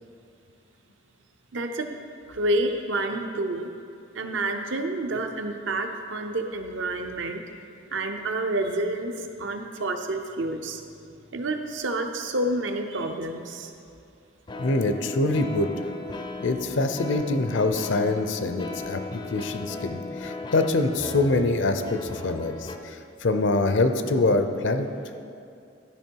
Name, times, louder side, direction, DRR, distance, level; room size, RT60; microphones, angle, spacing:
voice 1, 1.5-1.9 2.3-3.7 4.1-10.8 11.3-13.7, right 2 dB, 75° right, 5 dB, 0.7 m, -29 dB
sound 1, 10.7-11.8 14.5-22.8, left 3 dB, 25° left, 0.4 m, -37 dB
voice 2, 14.6-15.7 16.4-24.9, left 2 dB, 75° left, 8 dB, 0.6 m, -25 dB
12.5 x 5.4 x 4.6 m, 2.5 s
head